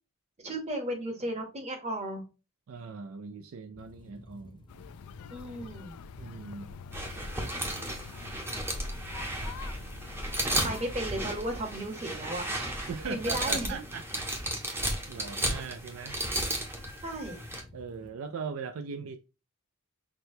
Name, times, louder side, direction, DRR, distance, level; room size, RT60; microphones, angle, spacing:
voice 1, 0.4-2.2 5.3-6.0 10.6-13.8 17.0-17.4, right 1 dB, 30° right, 1.0 m, -35 dB
voice 2, 2.7-4.7 6.2-6.8 10.6-10.8 12.9-14.3 14.5-16.2 17.7-19.2, right 5 dB, 70° right, 0.4 m, -40 dB
sound 1, 3.7-18.1, left 2 dB, 20° left, 0.4 m, -52 dB
sound 2, 4.7-10.9, left 7 dB, 90° left, 0.3 m, -47 dB
sound 3, 6.9-17.6, right 1 dB, 10° right, 0.7 m, -34 dB
6.0 x 2.2 x 2.7 m
head